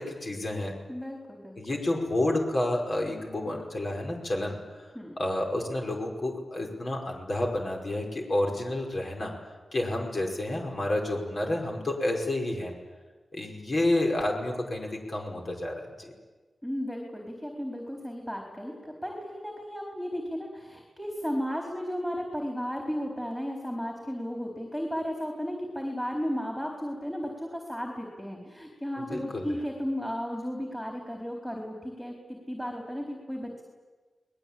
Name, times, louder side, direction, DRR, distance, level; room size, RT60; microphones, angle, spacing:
voice 1, 0.0-0.7 1.6-4.8 5.2-9.3 9.7-12.7 13.3-16.1 29.1-29.5, left 1 dB, 45° left, 0 dB, 5.3 m, -30 dB
voice 2, 0.9-1.6 4.9-5.2 16.6-33.6, equal, 5° left, 0 dB, 4.3 m, -34 dB
29.5 x 20.5 x 8.8 m, 1.3 s
wide cardioid pair, 90°, 0 cm